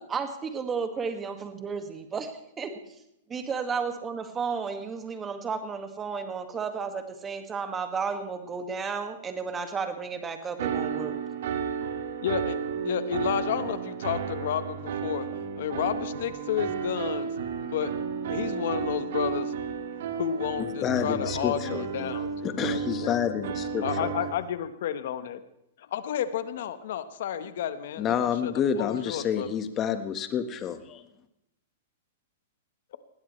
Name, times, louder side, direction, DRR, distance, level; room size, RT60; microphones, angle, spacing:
voice 1, 0.1-1.8 2.1-2.2 2.6-2.8 3.3-11.2, right 5 dB, 20° right, 7 dB, 2.0 m, -32 dB
sound 1, 10.6-24.3, right 7 dB, 70° right, 2.2 m, -32 dB
voice 2, 12.2-12.6 12.8-15.3 15.6-17.3 17.5-17.9 18.3-19.5 20.1-23.3 23.8-25.4 25.8-29.5, left 10 dB, 65° left, 12 dB, 1.3 m, -31 dB
voice 3, 20.6-22.1 22.4-24.1 28.0-31.0, left 8 dB, 30° left, 9 dB, 1.5 m, -29 dB
20.5 x 15.5 x 3.3 m, 0.84 s
hypercardioid pair, 130°, 0 cm